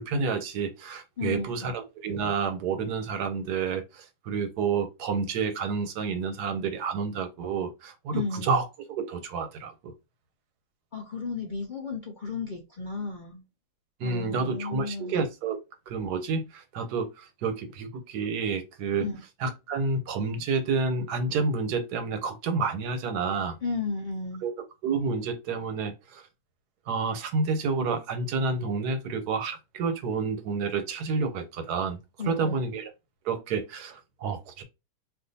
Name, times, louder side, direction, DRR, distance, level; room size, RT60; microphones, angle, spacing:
voice 1, 0.0-9.9 14.0-15.6 15.9-19.1 19.4-23.6 24.4-24.5 24.8-26.2 26.9-32.0 32.3-32.9 33.2-34.6, right 4 dB, 85° right, 1.3 m, -29 dB
voice 2, 1.2-1.6 8.1-8.5 10.9-13.4 14.0-15.2 19.0-19.2 23.6-24.4 32.2-32.6, left 4 dB, 65° left, 0.4 m, -33 dB
2.6 x 2.5 x 4.0 m
omnidirectional pair, 1.6 m